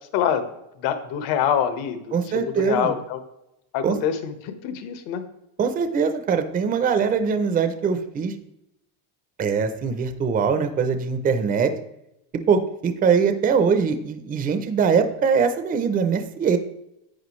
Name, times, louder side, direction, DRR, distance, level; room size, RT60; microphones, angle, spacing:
voice 1, 0.1-0.5 0.8-3.2 3.7-5.2, left 8 dB, 65° left, 9 dB, 1.4 m, -25 dB
voice 2, 2.1-2.9 3.8-4.0 5.6-8.3 9.4-11.7 12.5-16.6, right 6 dB, 20° right, 9 dB, 0.5 m, -22 dB
11.5 x 8.8 x 3.1 m, 0.87 s
cardioid pair, 170°, 50 cm